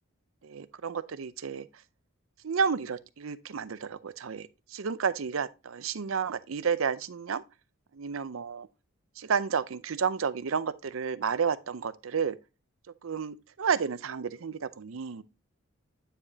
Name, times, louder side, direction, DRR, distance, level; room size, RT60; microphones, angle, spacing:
voice 1, 0.4-1.7 2.4-7.4 7.9-8.7 9.2-12.4 13.0-15.2, right 6 dB, 75° right, 0.5 m, -31 dB
9.2 x 5.0 x 2.7 m
head